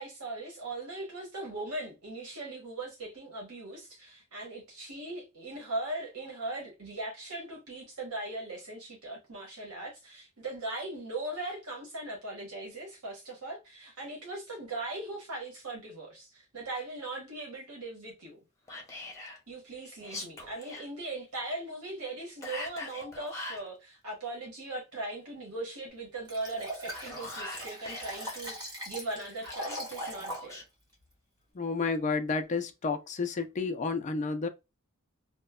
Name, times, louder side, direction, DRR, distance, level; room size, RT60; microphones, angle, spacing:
voice 1, 0.0-18.4 19.5-30.6, right 2 dB, 85° right, 1.2 m, -39 dB
Whispering, 18.7-19.4 20.0-20.9 22.4-23.7 26.7-28.6 29.4-30.6, left 2 dB, 15° left, 0.8 m, -41 dB
Liquid, 26.3-30.4 30.9-31.0, equal, 20° right, 1.4 m, -40 dB
voice 2, 31.5-34.5, left 4 dB, 35° left, 0.4 m, -31 dB
2.9 x 2.2 x 2.2 m
head